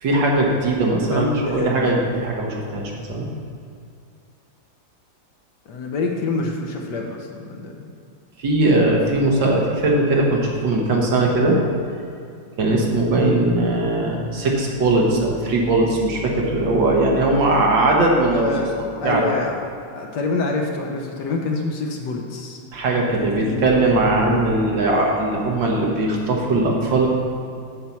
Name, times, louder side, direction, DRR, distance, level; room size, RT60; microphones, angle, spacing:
voice 1, 0.0-3.3 8.4-11.6 12.6-18.5 19.0-19.2 22.7-27.1, right 2 dB, 65° right, -2 dB, 2.0 m, -19 dB
voice 2, 1.0-2.1 5.7-7.9 13.2-13.3 17.5-17.6 18.3-18.7 19.0-19.7 19.9-22.6 23.2-24.6, left 3 dB, 65° left, 1 dB, 1.3 m, -27 dB
7.6 x 5.6 x 7.0 m, 2.4 s
omnidirectional pair, 2.2 m